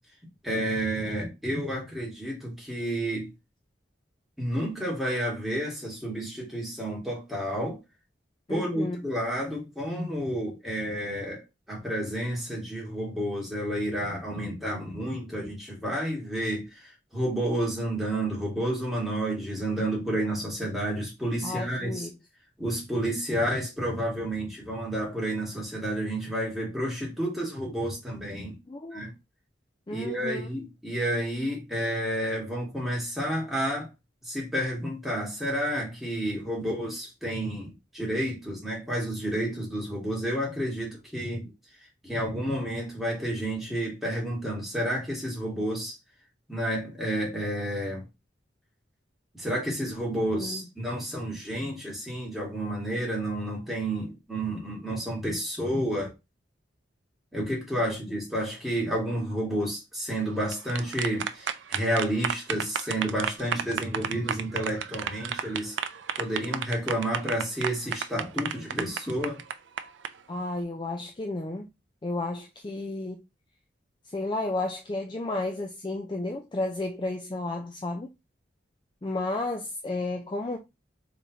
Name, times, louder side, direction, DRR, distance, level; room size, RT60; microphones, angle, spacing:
voice 1, 0.4-3.3 4.4-7.8 8.5-22.1 22.6-28.5 28.9-29.1 29.9-33.9 34.2-41.5 42.0-46.0 46.5-48.1 49.3-56.1 57.3-65.7 66.2-69.4, right 1 dB, ahead, 1.8 m, -30 dB
voice 2, 8.5-9.0 21.4-22.2 28.7-29.1 29.9-30.4 50.4-50.7 70.3-71.7 72.0-73.2 74.1-78.1 79.0-80.6, left 2 dB, 25° left, 0.4 m, -32 dB
sound 1, 60.3-70.1, right 8 dB, 85° right, 0.4 m, -32 dB
4.1 x 3.5 x 2.8 m
head